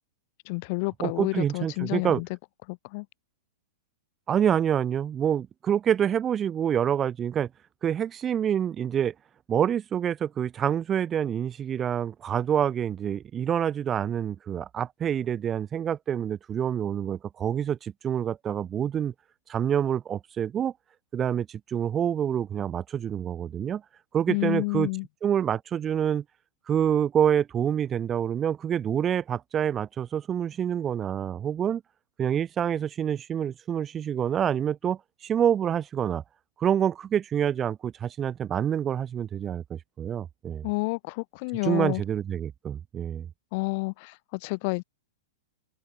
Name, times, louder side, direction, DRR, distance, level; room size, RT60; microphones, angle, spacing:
voice 1, 0.5-2.3 2.7-3.1 24.3-25.1 40.6-42.0 43.5-44.8, left 29 dB, 50° left, 3.4 m, -30 dB
voice 2, 1.0-2.2 4.3-7.5 7.8-9.1 9.5-19.1 19.5-20.7 21.1-23.8 24.1-24.9 25.2-26.2 26.7-31.8 32.2-36.2 36.6-40.7 41.6-43.3, right 9 dB, 25° right, 1.2 m, -27 dB
open air
hypercardioid pair, 105°, 0 cm